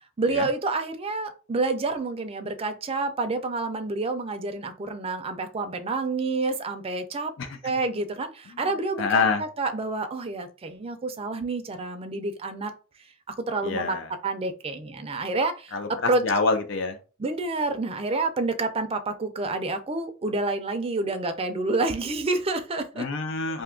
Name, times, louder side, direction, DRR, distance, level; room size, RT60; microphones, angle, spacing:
voice 1, 0.2-7.3 7.6-12.7 13.5-14.0 14.2-15.8 16.1-16.2 17.2-23.0, right 3 dB, 30° right, 0.4 m, -28 dB
voice 2, 9.0-9.4 13.6-14.1 15.7-17.0 23.0-23.6, left 4 dB, 65° left, 0.5 m, -26 dB
2.7 x 2.4 x 3.6 m
head